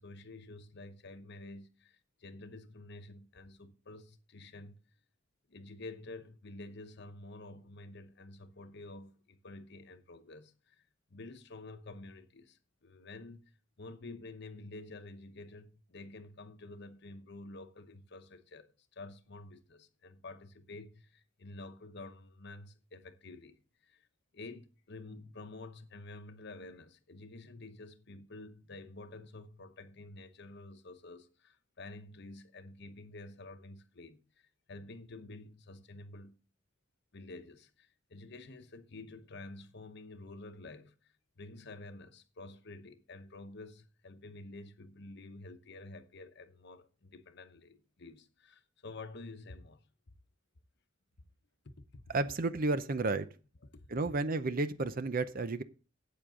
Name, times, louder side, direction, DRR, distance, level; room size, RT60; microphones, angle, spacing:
voice 1, 0.0-4.8 5.5-10.8 11.1-24.1 24.3-36.4 37.1-49.8 51.9-52.0 53.7-53.9, left 2 dB, 55° left, 0.9 m, -49 dB
voice 2, 52.1-53.3 53.9-55.6, right 3 dB, 45° right, 0.6 m, -32 dB
12.5 x 8.6 x 3.7 m
head